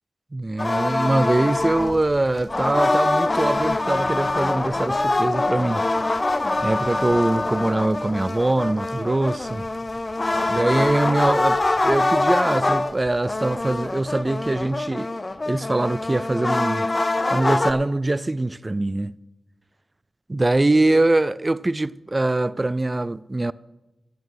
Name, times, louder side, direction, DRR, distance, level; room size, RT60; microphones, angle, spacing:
voice 1, 0.3-5.8 6.6-9.7 10.5-16.9 17.3-19.1 20.3-23.5, right 2 dB, 25° right, 0.3 m, -23 dB
sound 1, 0.6-17.7, left 2 dB, 30° left, 0.6 m, -24 dB
16.0 x 6.5 x 6.3 m
cardioid pair, 70°, 0 cm